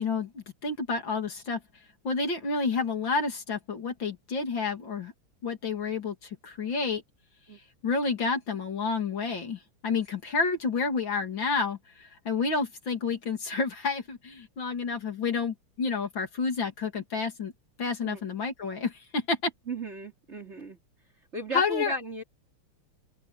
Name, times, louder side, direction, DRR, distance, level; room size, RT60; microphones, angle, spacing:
voice 1, 0.0-1.6 2.0-5.1 5.4-7.0 7.8-17.5 17.8-19.5 21.5-21.9, left 4 dB, 60° left, 3.4 m, -30 dB
voice 2, 19.7-20.8 21.3-22.2, right 2 dB, 30° right, 3.6 m, -35 dB
omnidirectional pair, 2.3 m